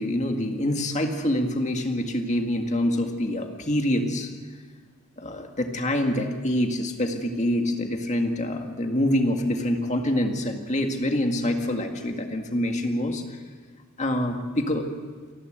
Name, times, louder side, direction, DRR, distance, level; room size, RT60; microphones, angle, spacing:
voice 1, 0.0-4.3 5.2-13.2 14.0-14.9, left 1 dB, 30° left, 4 dB, 1.9 m, -26 dB
28.5 x 11.5 x 8.0 m, 1.5 s
head